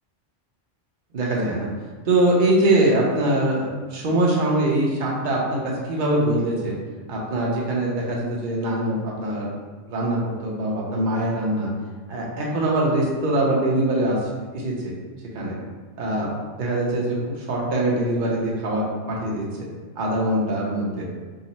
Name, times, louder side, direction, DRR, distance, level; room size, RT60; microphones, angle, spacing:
voice 1, 1.1-1.7 2.0-5.6 5.9-6.7 7.1-9.5 9.9-11.7 12.1-14.2 14.5-14.9 15.3-15.6 16.0-16.3 16.6-19.7 20.0-21.1, right 1 dB, 50° right, -4 dB, 0.8 m, -23 dB
3.8 x 2.0 x 4.1 m, 1.4 s
omnidirectional pair, 1.3 m